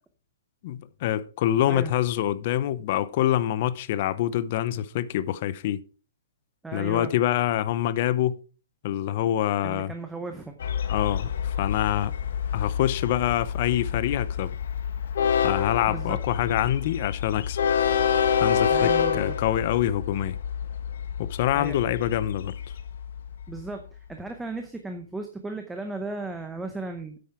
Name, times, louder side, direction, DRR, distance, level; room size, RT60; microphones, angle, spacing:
voice 1, 0.6-5.8 6.7-8.4 8.8-9.9 10.9-12.1 12.5-14.5 15.4-17.6 18.4-20.4 21.2-22.5, left 12 dB, 35° left, 0.6 m, -26 dB
voice 2, 6.6-7.1 9.6-10.6 15.9-16.2 18.7-19.4 21.5-21.8 23.5-27.2, right 3 dB, 5° right, 0.7 m, -35 dB
Train, 10.6-23.6, left 7 dB, 60° left, 1.2 m, -27 dB
9.2 x 8.6 x 4.4 m
hypercardioid pair, 175°, 0 cm